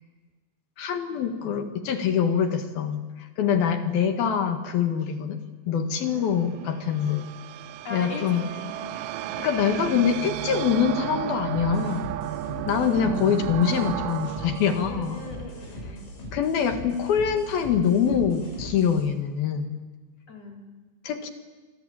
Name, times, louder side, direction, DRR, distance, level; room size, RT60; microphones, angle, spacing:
voice 1, 0.8-5.4 5.7-7.3 7.9-8.4 9.4-12.1 12.5-15.2 16.3-19.8 21.0-21.3, left 7 dB, 60° left, 7 dB, 2.9 m, -24 dB
sound 1, 6.0-16.3, right 14 dB, 80° right, 3.3 m, -34 dB
voice 2, 7.8-8.9 9.2-9.4 12.5-12.7 14.8-16.1 20.3-20.6, left 2 dB, 35° left, 2 dB, 4.6 m, -39 dB
sound 2, 11.5-19.0, equal, 80° left, 9.5 m, -40 dB
26.5 x 25.5 x 8.8 m, 1.3 s
omnidirectional pair, 5.7 m